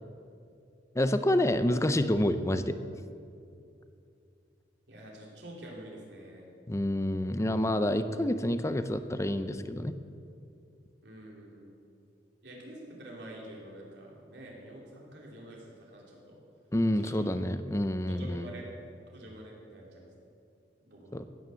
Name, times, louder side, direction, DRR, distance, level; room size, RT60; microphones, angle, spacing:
voice 1, 1.0-2.8 6.7-9.9 16.7-18.5 21.1-21.3, left 1 dB, 15° left, 10 dB, 0.6 m, -28 dB
voice 2, 4.9-6.5 11.0-11.7 12.4-16.4 16.9-17.4 18.1-18.7 19.1-20.3 20.9-21.3, right 1 dB, 70° right, -2 dB, 3.4 m, -47 dB
15.5 x 9.4 x 7.0 m, 2.5 s
head